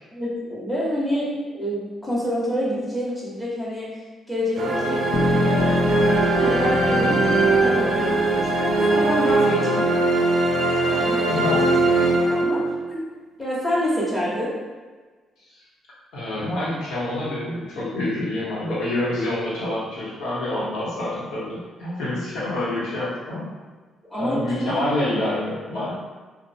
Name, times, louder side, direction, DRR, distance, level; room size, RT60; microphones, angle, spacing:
voice 1, 0.1-6.0 6.4-9.9 10.8-11.8 12.1-13.0 13.4-14.6 24.1-24.9 25.7-25.9, equal, 15° left, -7 dB, 0.9 m, -27 dB
sound 1, 4.6-12.9, right 2 dB, 65° right, 0.4 m, -20 dB
sound 2, 5.1-9.1, left 5 dB, 70° left, 0.4 m, -27 dB
voice 2, 16.1-23.5 24.1-25.9, left 1 dB, 85° left, -7 dB, 0.9 m, -27 dB
2.9 x 2.1 x 2.6 m, 1.4 s
cardioid pair, 90°, 0 cm